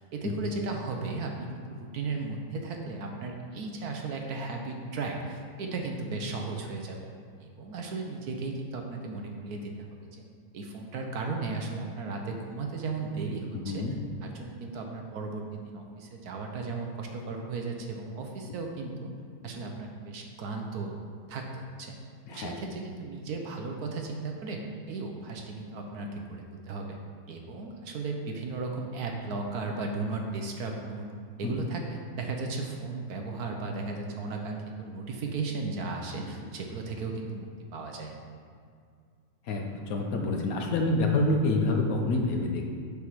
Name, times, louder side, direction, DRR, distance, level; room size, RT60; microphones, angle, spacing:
voice 1, 0.1-7.0 7.4-9.9 10.1-10.2 10.5-13.9 14.2-19.1 19.4-20.9 21.3-21.9 22.3-24.6 24.9-26.9 27.3-31.1 31.4-38.1, right 3 dB, 65° right, 2 dB, 1.1 m, -35 dB
voice 2, 13.5-13.9 22.3-22.6 31.4-31.5 36.4-36.5 39.4-42.7, left 2 dB, 60° left, 2 dB, 1.1 m, -27 dB
6.9 x 6.0 x 4.8 m, 2.2 s
omnidirectional pair, 2.0 m